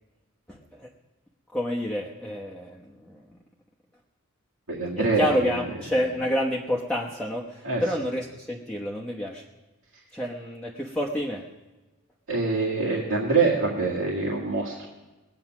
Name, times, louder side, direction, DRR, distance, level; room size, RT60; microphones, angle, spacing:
voice 1, 0.5-0.9 1.5-3.2 5.0-9.4 10.1-11.4, equal, 5° left, -3 dB, 1.0 m, -29 dB
voice 2, 4.7-5.6 7.6-7.8 12.3-14.9, right 3 dB, 75° right, -4 dB, 2.0 m, -25 dB
20.0 x 8.6 x 6.0 m, 1.1 s
head